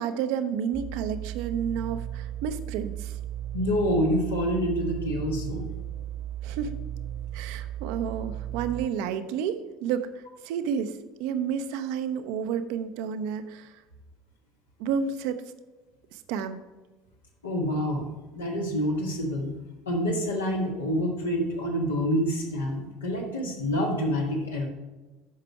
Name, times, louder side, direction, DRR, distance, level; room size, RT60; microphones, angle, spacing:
voice 1, 0.0-3.2 6.4-6.8 7.3-10.1 10.4-13.8 14.8-15.4 16.1-16.6, right 7 dB, 60° right, 10 dB, 0.6 m, -30 dB
sound 1, 0.7-8.9, right 11 dB, 5° right, 1.1 m, -35 dB
voice 2, 3.5-5.8 17.4-19.5 19.8-24.7, equal, 80° left, -1 dB, 1.7 m, -27 dB
8.5 x 5.9 x 4.7 m, 1.2 s
figure-of-eight pair, 70°, 0 cm